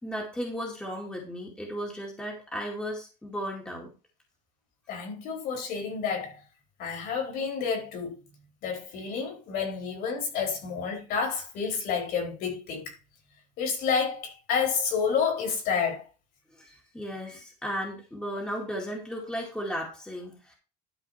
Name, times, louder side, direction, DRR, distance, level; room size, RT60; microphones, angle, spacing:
voice 1, 0.0-3.9 16.5-20.5, equal, 5° left, 2.3 m, -35 dB
voice 2, 4.9-6.4 6.8-8.2 8.6-12.9 13.6-16.1, left 6 dB, 50° left, 4.2 m, -29 dB
12.0 x 4.8 x 5.8 m
cardioid pair, 170°, 20 cm